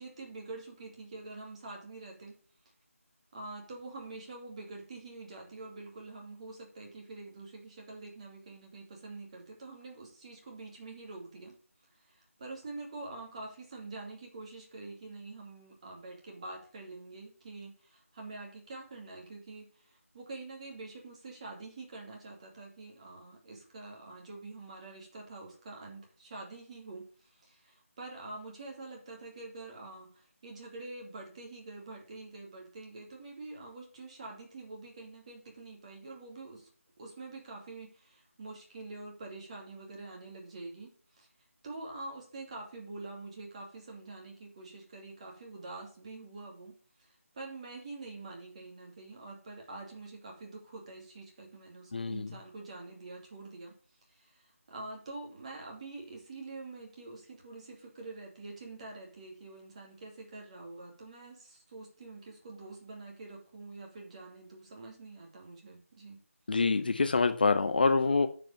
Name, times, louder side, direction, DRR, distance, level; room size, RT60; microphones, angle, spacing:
voice 1, 0.0-2.3 3.3-11.6 11.9-36.7 37.0-41.3 41.6-53.8 54.1-66.2, right 2 dB, 25° right, 2.6 m, -46 dB
voice 2, 51.9-52.3 66.5-68.3, left 4 dB, 40° left, 0.6 m, -26 dB
9.3 x 5.1 x 6.8 m
figure-of-eight pair, 160°, 8 cm